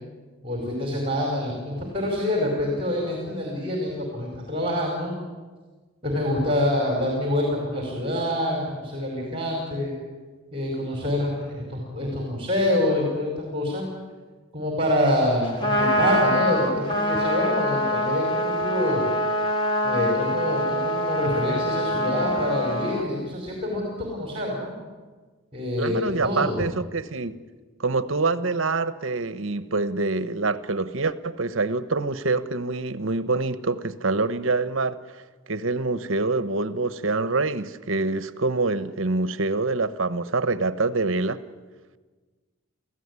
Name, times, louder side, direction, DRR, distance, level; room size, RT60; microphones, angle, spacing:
voice 1, 0.4-5.1 6.0-9.9 10.5-13.8 14.5-19.0 19.8-24.7 25.5-26.6, left 1 dB, 25° right, 5.0 m, -26 dB
Trumpet, 15.4-23.0, equal, 25° left, 3.1 m, -24 dB
voice 2, 25.8-27.3 27.8-35.0 35.5-41.4, right 3 dB, 70° right, 1.1 m, -25 dB
28.0 x 16.0 x 9.8 m
head